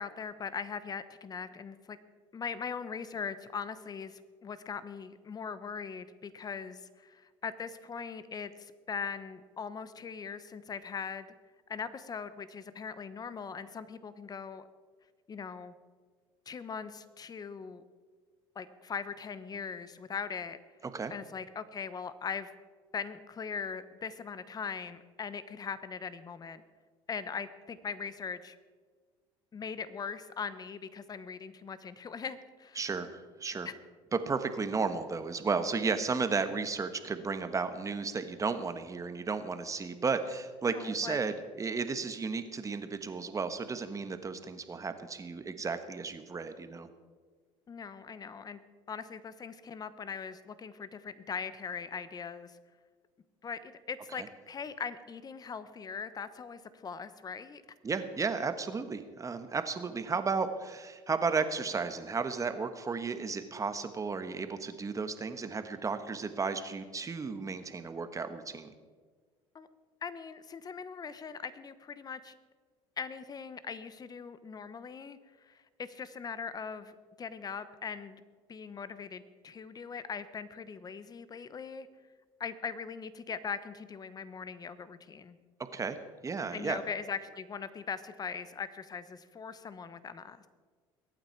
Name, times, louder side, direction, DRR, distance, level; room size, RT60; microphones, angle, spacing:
voice 1, 0.0-2.0 2.3-11.3 11.7-14.7 15.3-15.7 16.5-17.8 18.5-20.6 21.1-22.5 22.9-26.6 27.1-28.6 29.5-32.8 33.6-33.7 40.6-41.2 47.7-48.6 48.9-52.6 53.4-57.6 69.5-69.7 70.0-72.3 73.0-78.2 78.5-81.9 82.4-85.4 86.5-90.5, left 6 dB, 30° left, 14 dB, 1.0 m, -40 dB
voice 2, 32.8-33.7 34.1-46.9 54.1-54.3 57.8-68.7 85.7-86.0 86.2-86.8, right 4 dB, 25° right, 9 dB, 1.3 m, -34 dB
22.5 x 9.0 x 4.6 m, 1.5 s
supercardioid pair, 90°, 12 cm